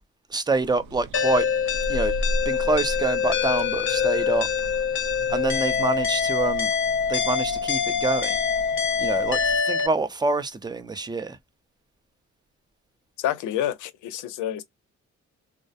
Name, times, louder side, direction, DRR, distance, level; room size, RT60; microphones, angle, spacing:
voice 1, 0.3-1.5 1.9-2.1 2.5-4.5 5.3-6.7 7.1-8.4 9.0-11.4, right 3 dB, 15° right, 0.4 m, -26 dB
sound 1, 0.5-9.6, equal, 80° right, 0.6 m, -36 dB
sound 2, 1.1-9.9, left 7 dB, 40° left, 0.6 m, -25 dB
voice 2, 13.2-14.6, left 11 dB, 80° left, 0.6 m, -28 dB
2.3 x 2.0 x 2.7 m
cardioid pair, 90°, 30 cm